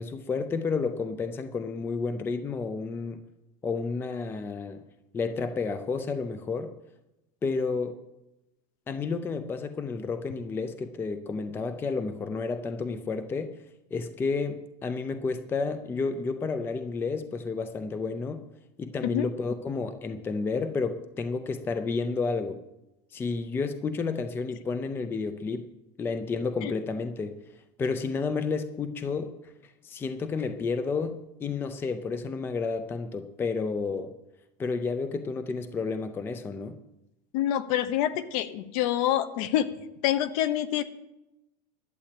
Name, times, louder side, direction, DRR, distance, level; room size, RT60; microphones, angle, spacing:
voice 1, 0.0-3.2 3.6-4.8 5.1-6.7 7.4-8.0 8.9-13.6 13.9-18.4 18.8-22.6 23.1-25.7 26.0-27.4 27.8-29.3 29.8-34.1 34.6-36.8, left 4 dB, 10° left, 10 dB, 0.5 m, -31 dB
voice 2, 37.3-39.7 40.0-40.8, left 12 dB, 55° left, 13 dB, 1.0 m, -26 dB
11.5 x 8.4 x 8.6 m, 0.93 s
cardioid pair, 180°, 21 cm